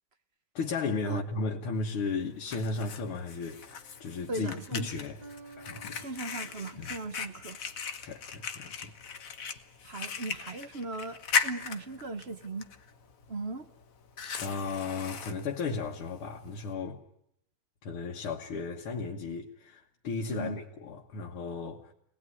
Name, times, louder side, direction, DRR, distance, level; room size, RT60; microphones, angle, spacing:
voice 1, 0.5-5.2 5.6-6.0 6.8-6.9 8.0-8.9 14.4-17.0 17.8-21.9, left 4 dB, 90° left, 2.3 m, -35 dB
Fire, 1.8-16.7, left 6 dB, 45° left, 1.4 m, -38 dB
sound 1, 4.0-4.5 5.2-8.1, right 3 dB, 20° right, 2.9 m, -53 dB
voice 2, 4.3-4.9 6.0-7.6 9.8-12.7 13.3-13.7 20.3-20.6, right 3 dB, 35° right, 1.1 m, -38 dB
25.5 x 19.0 x 9.8 m
omnidirectional pair, 2.3 m